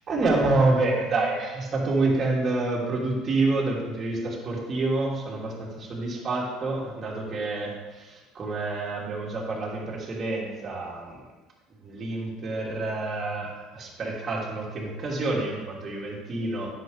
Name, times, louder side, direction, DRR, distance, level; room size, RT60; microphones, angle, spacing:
voice 1, 0.1-11.3 11.8-16.7, right 2 dB, 40° right, -4 dB, 3.2 m, -28 dB
10.5 x 8.0 x 3.6 m, 1.2 s
hypercardioid pair, 70°, 0 cm